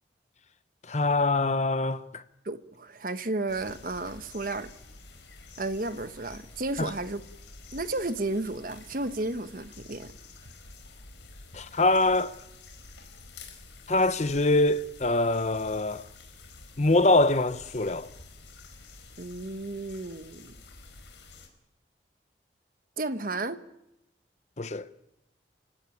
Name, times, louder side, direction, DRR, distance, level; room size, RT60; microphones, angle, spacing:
voice 1, 0.9-2.2 6.8-6.9 11.5-12.3 13.9-16.0 16.8-18.1 24.6-24.9, left 2 dB, 40° left, 0.9 m, -24 dB
voice 2, 2.4-4.7 5.6-7.2 7.7-10.1 19.2-20.5 23.0-23.6, right 2 dB, 50° right, 1.2 m, -33 dB
sound 1, 3.5-21.5, left 3 dB, 80° left, 4.5 m, -49 dB
28.0 x 16.5 x 9.1 m
head